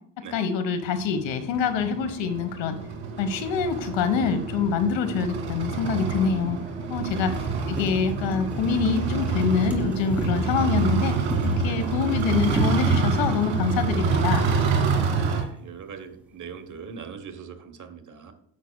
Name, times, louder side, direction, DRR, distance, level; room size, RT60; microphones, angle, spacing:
voice 1, 0.3-2.8 3.2-6.6 6.9-11.2 11.4-14.4, left 6 dB, 70° left, 10 dB, 1.3 m, -25 dB
sound 1, 0.9-15.4, right 5 dB, 65° right, 2.3 m, -27 dB
sound 2, 5.1-5.2 6.1-6.2 6.7-6.8 7.1-14.6 15.6-15.7 15.9-16.0, right 1 dB, 5° right, 2.3 m, -32 dB
voice 2, 10.4-10.8 11.6-11.8 15.1-18.3, right 6 dB, 40° right, 7 dB, 1.2 m, -41 dB
9.9 x 7.3 x 2.3 m, 0.68 s
supercardioid pair, 90°, 46 cm